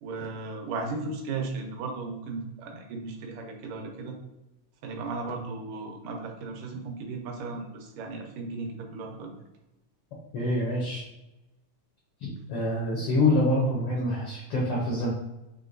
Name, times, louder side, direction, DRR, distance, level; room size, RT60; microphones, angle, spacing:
voice 1, 0.0-4.2 4.8-9.3, right 3 dB, 90° right, 2 dB, 2.3 m, -36 dB
voice 2, 10.3-11.0 12.2-15.1, left 1 dB, 85° left, -3 dB, 1.2 m, -26 dB
5.7 x 2.8 x 2.6 m, 0.95 s
omnidirectional pair, 3.6 m